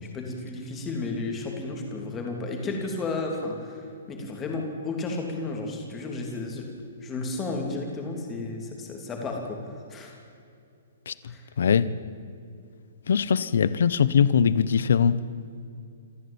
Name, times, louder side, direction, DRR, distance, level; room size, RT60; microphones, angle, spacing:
voice 1, 0.0-6.7 7.0-9.6 9.9-10.2 11.2-11.4, left 3 dB, 10° left, 2 dB, 3.1 m, -33 dB
voice 2, 13.1-15.1, left 7 dB, 65° left, 16 dB, 1.1 m, -21 dB
27.0 x 14.0 x 8.8 m, 2.5 s
hypercardioid pair, 175°, 0 cm